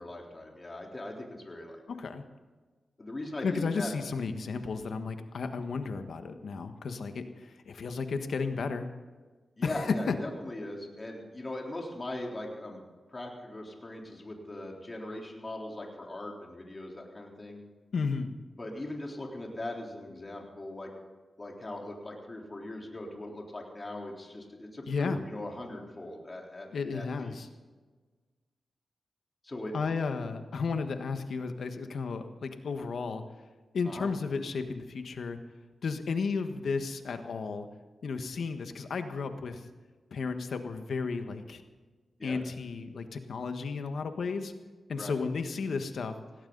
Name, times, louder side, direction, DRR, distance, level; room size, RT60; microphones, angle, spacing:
voice 1, 0.0-1.8 3.0-3.9 9.6-12.8 13.1-17.6 18.6-20.9 21.4-27.4 29.4-29.9 33.9-34.1 42.2-42.4 45.0-45.1, left 1 dB, 35° left, 0 dB, 3.7 m, -40 dB
voice 2, 1.9-2.2 3.4-8.9 9.6-10.1 17.9-18.3 24.9-25.2 26.7-27.5 29.7-33.2 33.7-35.4 35.8-37.7 38.0-39.6 40.1-41.6 42.2-44.5 44.9-46.1, left 4 dB, 80° left, 8 dB, 1.4 m, -33 dB
18.0 x 17.0 x 4.0 m, 1.4 s
cardioid pair, 60°, 0 cm